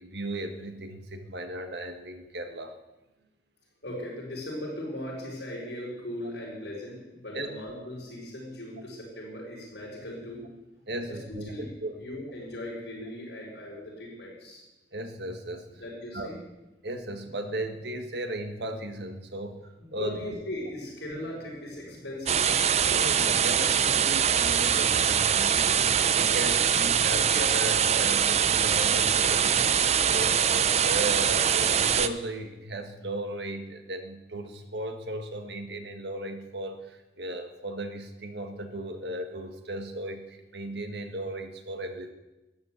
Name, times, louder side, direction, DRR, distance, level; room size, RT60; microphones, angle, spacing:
voice 1, 0.0-2.7 7.3-7.5 10.9-12.0 14.9-15.7 16.1-16.4 16.8-20.2 22.8-25.8 26.1-42.1, right 1 dB, 75° right, 6 dB, 1.7 m, -36 dB
voice 2, 3.8-10.4 11.1-11.2 11.5-11.7 12.0-14.6 15.8-16.4 19.8-22.4, left 1 dB, 80° left, -8 dB, 5.7 m, -38 dB
sound 1, 22.3-32.1, right 8 dB, 40° right, 0.5 m, -23 dB
13.0 x 9.9 x 8.3 m, 1.0 s
head